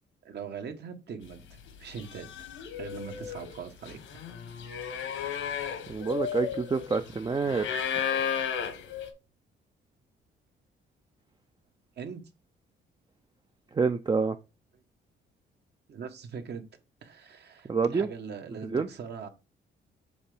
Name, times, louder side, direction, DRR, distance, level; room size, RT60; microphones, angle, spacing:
voice 1, 0.2-2.3 2.8-4.0 12.0-12.2 15.9-16.6 17.0-19.3, right 6 dB, 55° right, 1.3 m, -41 dB
sound 1, 1.5-1.7 2.0-9.1, left 8 dB, 80° left, 1.3 m, -34 dB
voice 2, 5.9-7.7 13.7-14.4 17.7-18.1 18.6-18.9, right 4 dB, 20° right, 0.5 m, -27 dB
7.1 x 3.3 x 5.0 m
cardioid pair, 90°, 20 cm